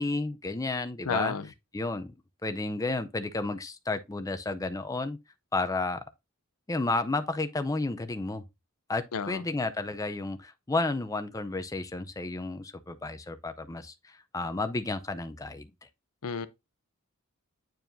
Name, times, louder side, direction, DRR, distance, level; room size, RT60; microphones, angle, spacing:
voice 1, 0.0-1.4 1.7-2.1 2.4-5.2 5.5-6.0 6.7-8.4 8.9-15.7, left 2 dB, 15° left, 0.5 m, -32 dB
voice 2, 1.1-1.4 9.1-9.4 16.2-16.5, left 6 dB, 75° left, 0.6 m, -31 dB
9.0 x 4.7 x 2.6 m
head